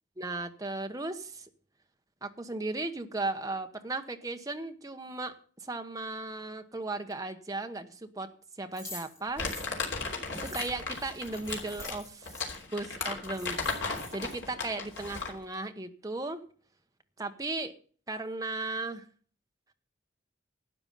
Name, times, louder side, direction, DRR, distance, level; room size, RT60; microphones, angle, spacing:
voice 1, 0.2-1.5 2.2-8.3 8.6-9.4 10.4-12.3 12.7-16.4 17.2-17.7 18.1-19.1, right 2 dB, 20° right, 6 dB, 1.0 m, -36 dB
sound 1, 8.7-12.4 13.0-13.1 13.2-14.3, left 2 dB, 15° left, 4.7 m, -46 dB
Crumpling crinkling, 9.4-15.4, left 4 dB, 75° left, 3.2 m, -36 dB
12.5 x 9.0 x 5.5 m, 0.43 s
head